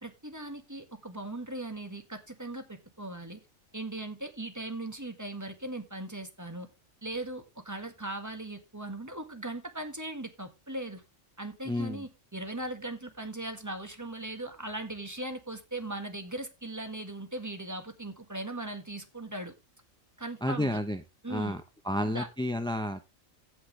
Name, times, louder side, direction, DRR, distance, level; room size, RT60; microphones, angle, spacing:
voice 1, 0.0-3.4 3.7-6.7 7.0-11.0 11.4-19.5 20.2-20.8 21.2-21.6 22.0-22.3, right 2 dB, 15° right, 6 dB, 1.6 m, -39 dB
voice 2, 11.7-12.0 20.4-21.0 21.3-23.1, left 1 dB, 5° left, 8 dB, 0.4 m, -31 dB
16.0 x 6.1 x 3.2 m, 0.23 s
omnidirectional pair, 1.4 m